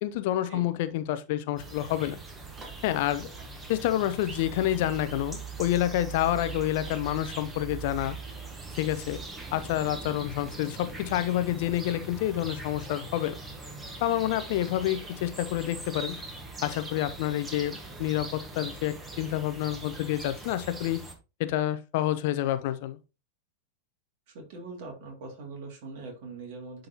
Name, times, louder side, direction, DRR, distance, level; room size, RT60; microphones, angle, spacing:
voice 1, 0.0-2.2 2.8-3.3 3.7-8.2 8.7-9.3 9.5-13.4 14.0-16.2 16.6-21.0 21.4-23.0, left 13 dB, 50° left, 12 dB, 0.6 m, -28 dB
sound 1, 1.6-21.1, right 4 dB, 15° right, 1.4 m, -41 dB
voice 2, 24.3-26.9, right 3 dB, 45° right, 2 dB, 2.4 m, -42 dB
11.0 x 3.9 x 2.9 m, 0.29 s
figure-of-eight pair, 90°, 0 cm